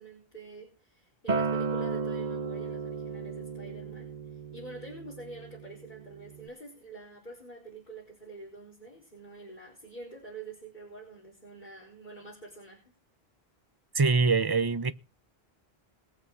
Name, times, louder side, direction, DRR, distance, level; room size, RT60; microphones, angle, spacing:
voice 1, 0.0-12.8, right 3 dB, 50° left, 4.3 m, -46 dB
Acoustic guitar, 1.3-6.5, right 4 dB, 45° right, 1.2 m, -34 dB
voice 2, 13.9-14.9, right 4 dB, 25° right, 0.8 m, -24 dB
22.0 x 8.0 x 4.7 m
omnidirectional pair, 1.0 m